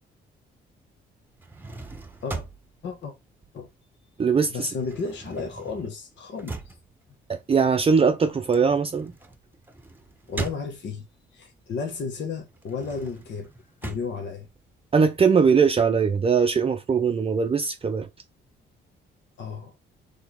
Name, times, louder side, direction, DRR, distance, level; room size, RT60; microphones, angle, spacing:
sound 1, 1.3-4.1 4.4-11.2 11.7-15.2, right 3 dB, 10° right, 1.0 m, -40 dB
voice 1, 2.8-3.1 3.5-3.7 4.5-6.5 10.3-11.1 11.3-13.5 13.8-14.5 19.4-19.7, left 5 dB, 65° left, 1.2 m, -33 dB
voice 2, 4.2-4.7 7.3-9.1 14.9-18.1, right 5 dB, 30° right, 0.5 m, -21 dB
4.3 x 3.4 x 3.5 m
cardioid pair, 90°, 20 cm